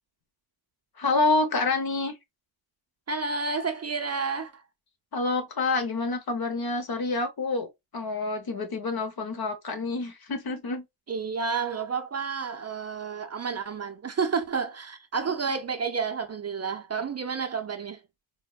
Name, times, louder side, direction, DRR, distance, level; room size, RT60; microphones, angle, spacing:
voice 1, 1.0-2.1 5.1-7.7 7.9-10.8 15.1-15.3, left 3 dB, 55° left, 0.9 m, -27 dB
voice 2, 3.1-4.6 11.1-18.0, right 5 dB, 35° right, 0.4 m, -30 dB
4.3 x 2.1 x 2.2 m
wide cardioid pair, 85°, 46 cm